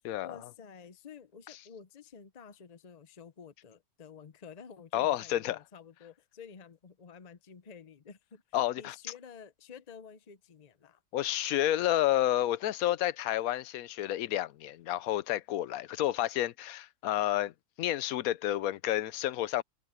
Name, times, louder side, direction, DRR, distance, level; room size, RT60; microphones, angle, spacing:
voice 1, 0.0-8.4 8.8-11.0, left 6 dB, 45° left, 0.5 m, -51 dB
voice 2, 4.9-5.6 8.5-8.9 11.1-17.5 17.8-19.6, left 13 dB, 65° left, 1.0 m, -30 dB
omnidirectional pair, 1.7 m